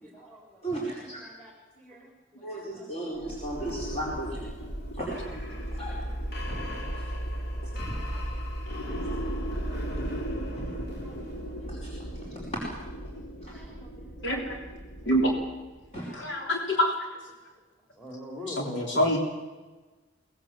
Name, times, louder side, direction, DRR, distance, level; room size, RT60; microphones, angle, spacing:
voice 1, 0.0-0.7 1.0-3.3 5.6-5.7 6.1-6.2 7.2-7.3 7.7-9.2 10.4-10.5 11.0-11.7 13.5-14.3 14.9-15.1 15.9-16.8 17.8-19.2, left 1 dB, 5° left, 0 dB, 3.3 m, -47 dB
voice 2, 0.6-1.2 2.4-4.4 4.9-6.1 6.5-7.1 7.8-8.1 10.5-10.8 11.7-12.0 12.5-12.6 13.4-13.6 15.9-16.1, right 1 dB, 35° left, -5 dB, 4.8 m, -36 dB
sound 1, 3.2-16.0, equal, 55° left, 3.8 m, -35 dB
voice 3, 14.2-14.6 15.1-15.4 16.1-17.1 18.5-19.2, equal, 75° left, 0 dB, 3.5 m, -26 dB
23.5 x 19.5 x 7.4 m, 1.2 s
head